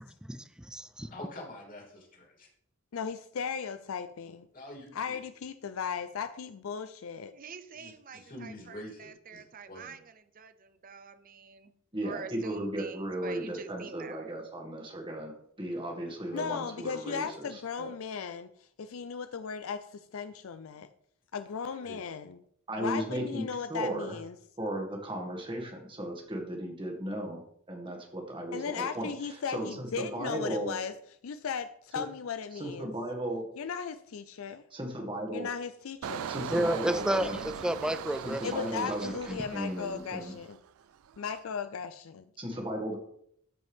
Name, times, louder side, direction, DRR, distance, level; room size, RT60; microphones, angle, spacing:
voice 1, 0.2-1.1 36.5-38.4 38.9-39.0, right 1 dB, 5° right, 0.4 m, -31 dB
voice 2, 1.1-2.5 4.5-5.2 7.8-9.9 21.8-22.0, left 1 dB, 40° left, 3.0 m, -46 dB
voice 3, 2.9-4.5 4.9-7.3 16.3-20.9 21.3-22.4 22.8-24.4 28.5-30.9 31.2-32.9 33.6-34.6 35.3-36.3 38.4-40.6 41.2-42.3, left 6 dB, 75° left, 0.4 m, -36 dB
voice 4, 7.3-11.7 12.0-14.3, right 5 dB, 40° right, 0.7 m, -46 dB
voice 5, 11.9-15.3 15.6-17.9 22.7-24.2 24.6-27.4 27.7-29.1 29.5-30.8 31.9-32.0 32.5-33.5 34.7-35.5 36.3-37.4 38.2-40.3 42.4-43.0, right 1 dB, 25° right, 2.0 m, -36 dB
Engine, 36.0-40.7 41.1-41.4, right 8 dB, 85° right, 0.4 m, -40 dB
13.5 x 5.4 x 3.6 m
head